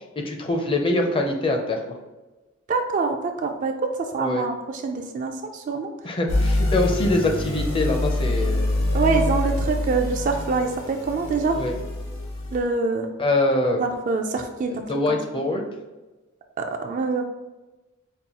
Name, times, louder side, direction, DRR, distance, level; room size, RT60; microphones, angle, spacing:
voice 1, 0.2-1.8 4.2-4.5 6.0-8.8 11.6-11.7 13.2-13.8 14.9-15.6, left 2 dB, 25° left, 3 dB, 0.5 m, -23 dB
voice 2, 2.7-5.9 8.9-11.6 12.5-13.1 13.8-14.7 15.1-15.2 16.6-17.3, right 4 dB, 40° right, 4 dB, 0.3 m, -25 dB
sound 1, 6.3-12.6, left 1 dB, 75° left, 0.9 m, -25 dB
5.3 x 2.3 x 2.9 m, 1.1 s
head